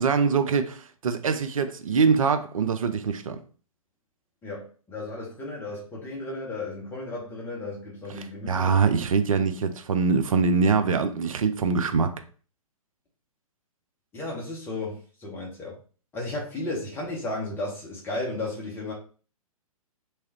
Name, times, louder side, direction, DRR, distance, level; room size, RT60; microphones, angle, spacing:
voice 1, 0.0-3.4 8.5-12.1, right 5 dB, 65° right, 0.5 m, -23 dB
voice 2, 4.4-9.0 14.1-15.8 16.1-18.9, left 2 dB, 10° left, 1.1 m, -34 dB
3.5 x 3.1 x 2.9 m
figure-of-eight pair, 120°, 19 cm